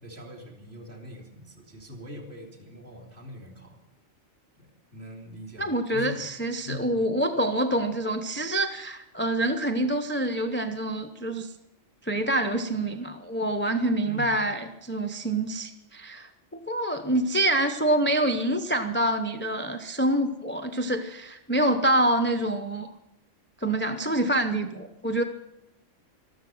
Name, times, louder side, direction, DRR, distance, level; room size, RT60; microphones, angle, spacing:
voice 1, 0.0-3.8 4.6-4.7 4.9-6.2 6.6-6.9 14.1-14.3, left 1 dB, 45° right, 1 dB, 3.5 m, -42 dB
voice 2, 5.6-11.5 12.0-16.3 16.7-22.9 23.6-25.2, right 1 dB, 10° left, 5 dB, 0.7 m, -26 dB
13.0 x 13.0 x 7.8 m, 0.92 s
omnidirectional pair, 1.3 m